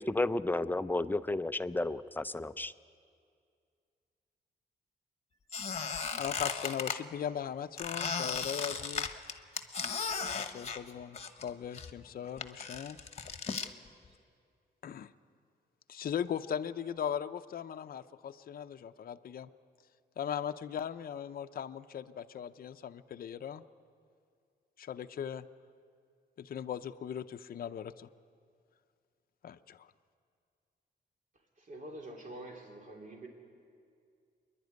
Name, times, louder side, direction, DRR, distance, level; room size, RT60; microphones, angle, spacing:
voice 1, 0.0-2.7, left 2 dB, 10° left, 12 dB, 0.5 m, -32 dB
Squeak, 5.5-7.0 7.8-11.5 11.7-13.7, left 5 dB, 40° left, 1.1 m, -36 dB
voice 2, 6.2-9.2 10.3-13.0 14.8-15.1 15.9-19.5 20.2-23.6 24.8-25.5 26.4-28.1 29.4-29.9, left 8 dB, 60° left, 9 dB, 0.6 m, -39 dB
voice 3, 31.6-33.3, right 1 dB, 50° right, 1 dB, 3.3 m, -46 dB
27.5 x 11.0 x 9.4 m, 2.3 s
wide cardioid pair, 120°, 17 cm